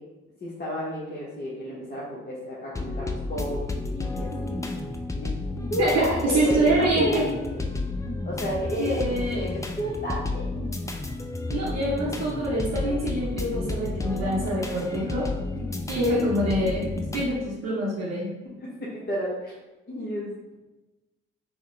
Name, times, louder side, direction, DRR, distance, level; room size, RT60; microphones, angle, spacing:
voice 1, 0.4-4.7 5.1-7.7 8.2-10.6 18.6-19.5 19.9-20.5, equal, 30° left, -6 dB, 1.0 m, -31 dB
sound 1, 2.7-17.3, left 2 dB, 10° left, 0.4 m, -31 dB
voice 2, 5.8-7.2 8.8-9.5 11.5-15.3 15.9-18.3, right 1 dB, 50° right, -5 dB, 0.8 m, -26 dB
3.7 x 2.1 x 3.1 m, 1.1 s
hypercardioid pair, 45°, 33 cm